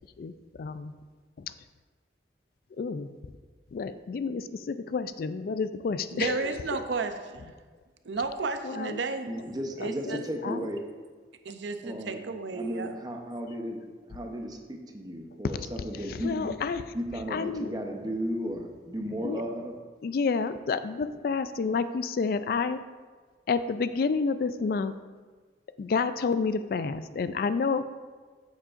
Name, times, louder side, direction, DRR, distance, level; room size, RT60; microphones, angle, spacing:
voice 1, 0.2-0.9 1.4-1.5 2.8-3.1 3.7-6.5 8.6-9.0 9.8-10.7 16.1-16.8 17.3-17.7 19.2-19.4 20.0-22.8 23.5-24.9 25.8-27.8, left 5 dB, 55° left, 12 dB, 0.3 m, -30 dB
voice 2, 6.1-7.5 8.0-9.3 9.8-10.2 11.4-13.0, right 4 dB, 85° right, 8 dB, 0.5 m, -33 dB
voice 3, 9.3-10.8 11.8-12.2 12.5-16.5 16.9-19.8, equal, 20° right, 2 dB, 0.7 m, -35 dB
8.6 x 7.3 x 2.5 m, 1.4 s
head